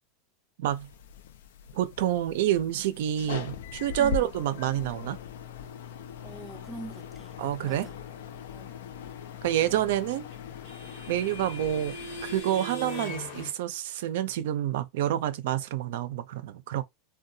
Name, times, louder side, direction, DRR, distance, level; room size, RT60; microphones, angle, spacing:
voice 1, 0.6-0.9 1.7-5.2 7.4-7.9 9.4-10.3 11.1-12.0 12.2-16.8, right 12 dB, 70° right, 0.4 m, -28 dB
sound 1, 0.7-12.4, left 8 dB, 85° left, 0.3 m, -41 dB
voice 2, 6.2-8.0 8.5-8.7, right 2 dB, 5° right, 0.3 m, -44 dB
sound 2, 9.8-13.5, left 1 dB, 60° left, 1.0 m, -40 dB
2.7 x 2.2 x 2.6 m
supercardioid pair, 150°, 0 cm